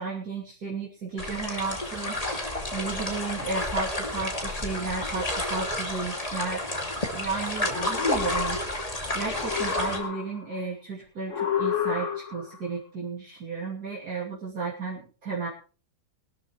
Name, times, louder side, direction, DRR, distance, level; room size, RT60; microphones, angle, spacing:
voice 1, 0.0-6.7 7.1-8.6 9.1-15.5, right 4 dB, 65° right, -6 dB, 3.5 m, -33 dB
sound 1, 1.2-10.0, left 1 dB, 20° left, 2.6 m, -31 dB
sound 2, 7.6-9.0 9.3-10.6 11.3-12.6, left 8 dB, 50° left, 1.6 m, -30 dB
22.0 x 13.0 x 3.2 m, 0.37 s
omnidirectional pair, 1.7 m